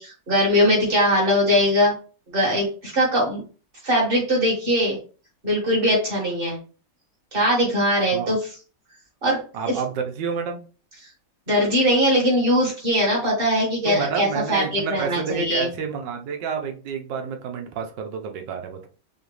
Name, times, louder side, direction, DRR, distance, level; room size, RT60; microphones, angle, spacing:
voice 1, 0.0-1.9 2.3-3.4 3.8-5.0 5.4-6.6 7.3-8.4 9.2-9.4 9.7-9.8 11.5-15.7, equal, 30° right, -3 dB, 1.9 m, -21 dB
voice 2, 9.5-10.6 13.8-18.9, right 6 dB, 80° right, 4 dB, 1.4 m, -29 dB
4.9 x 2.5 x 3.1 m, 0.37 s
omnidirectional pair, 1.9 m